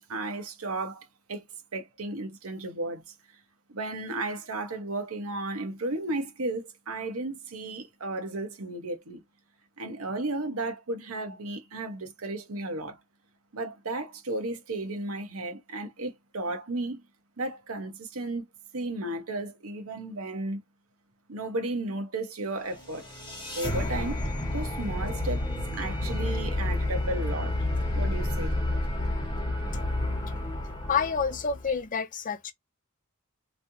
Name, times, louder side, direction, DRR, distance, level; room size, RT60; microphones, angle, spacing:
voice 1, 0.0-1.4 1.7-3.0 3.7-9.2 9.8-13.0 13.5-17.0 17.4-18.4 18.7-20.6 21.3-23.1 23.5-24.2 24.5-25.5 25.7-27.7 27.9-28.5, right 2 dB, 75° right, 1.0 m, -34 dB
sound 1, 22.6-31.8, left 1 dB, 20° left, 1.3 m, -30 dB
voice 2, 30.9-32.5, left 6 dB, 35° left, 0.5 m, -28 dB
3.1 x 2.7 x 2.6 m
head